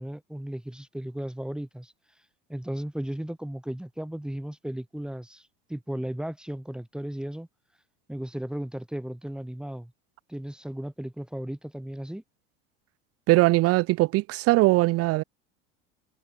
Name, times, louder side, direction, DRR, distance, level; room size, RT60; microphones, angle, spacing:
voice 1, 0.0-1.9 2.5-7.5 8.1-9.9 10.3-12.2, right 1 dB, 5° right, 5.2 m, -35 dB
voice 2, 13.3-15.2, right 20 dB, 50° right, 1.3 m, -21 dB
hypercardioid pair, 100°, 30 cm